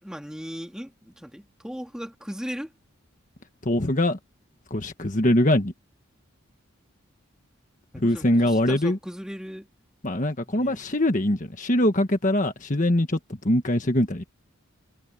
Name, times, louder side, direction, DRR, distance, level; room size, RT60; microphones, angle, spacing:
voice 1, 0.0-2.7 7.9-9.7 10.5-10.8, equal, 5° right, 2.3 m, -37 dB
voice 2, 3.6-4.2 4.7-5.7 7.9-9.0 10.0-13.2 13.4-14.2, left 1 dB, 35° left, 1.5 m, -22 dB
head